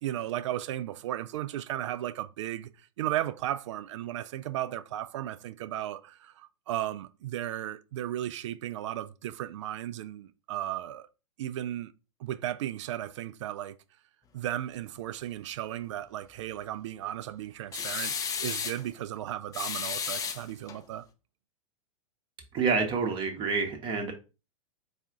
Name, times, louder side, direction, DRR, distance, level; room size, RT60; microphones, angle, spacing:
voice 1, 0.0-11.1 11.4-11.9 12.2-13.8 14.3-21.1, right 12 dB, 55° right, 0.4 m, -35 dB
sound 1, 17.7-18.8 19.5-20.8, left 6 dB, 20° left, 0.5 m, -33 dB
voice 2, 22.5-24.1, right 5 dB, 30° right, 0.8 m, -28 dB
4.2 x 2.4 x 3.6 m
figure-of-eight pair, 100°, 18 cm